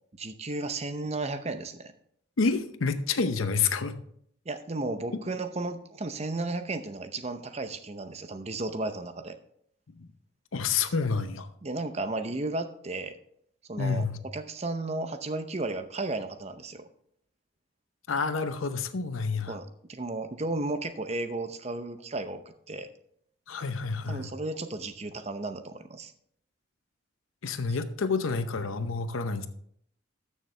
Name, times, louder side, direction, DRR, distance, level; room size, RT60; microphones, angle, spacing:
voice 1, 0.2-1.9 4.5-9.4 11.6-13.2 13.7-16.8 19.5-22.4 22.7-22.9 24.1-26.1 27.7-27.8, right 2 dB, 30° right, 9 dB, 0.7 m, -34 dB
voice 2, 2.4-4.0 10.0-10.1 10.5-11.5 13.8-14.2 18.1-19.5 23.5-24.3 27.4-29.5, left 4 dB, 90° left, 10 dB, 0.7 m, -28 dB
13.5 x 6.5 x 3.3 m, 0.68 s
head